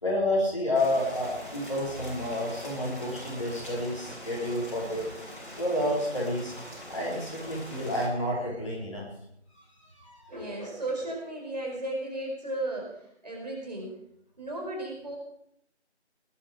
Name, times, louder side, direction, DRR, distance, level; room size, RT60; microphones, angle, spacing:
voice 1, 0.0-5.1 5.6-6.5 6.9-9.1 9.9-10.5, left 1 dB, 25° left, -5 dB, 4.0 m, -30 dB
Rain, 0.7-8.1, equal, 50° left, 6.7 m, -43 dB
voice 2, 10.3-14.0 14.4-15.2, right 1 dB, 35° right, -1 dB, 4.8 m, -35 dB
19.0 x 11.5 x 5.0 m, 0.73 s
figure-of-eight pair, 170°, 34 cm